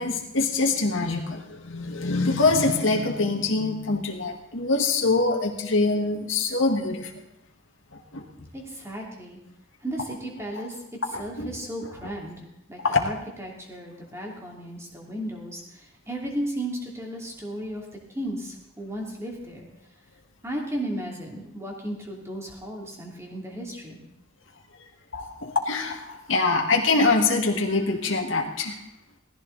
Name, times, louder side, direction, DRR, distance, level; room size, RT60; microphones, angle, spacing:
voice 1, 0.0-7.1 8.1-8.2 11.1-11.5 12.0-12.1 12.8-13.1 25.1-28.8, left 3 dB, 75° left, 1 dB, 1.9 m, -24 dB
voice 2, 8.5-9.4 9.8-10.7 11.2-12.4 12.7-15.6 16.1-17.8 18.1-19.7 20.4-24.0, right 1 dB, 15° right, -1 dB, 3.0 m, -34 dB
18.0 x 14.5 x 4.1 m, 0.82 s
head